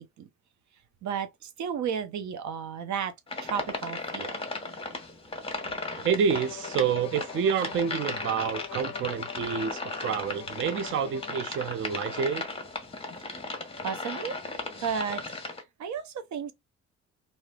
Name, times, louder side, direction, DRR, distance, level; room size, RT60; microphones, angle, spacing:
voice 1, 1.0-3.1 3.4-4.4 13.8-14.4 14.8-15.3 15.8-16.5, right 7 dB, 70° right, 0.8 m, -33 dB
sound 1, 3.3-15.6, left 3 dB, 20° left, 1.2 m, -36 dB
voice 2, 6.0-12.5, right 7 dB, 45° right, 0.5 m, -28 dB
Bowed string instrument, 6.3-11.7, left 13 dB, 60° left, 0.4 m, -44 dB
3.2 x 2.7 x 2.3 m
cardioid pair, 90°, 30 cm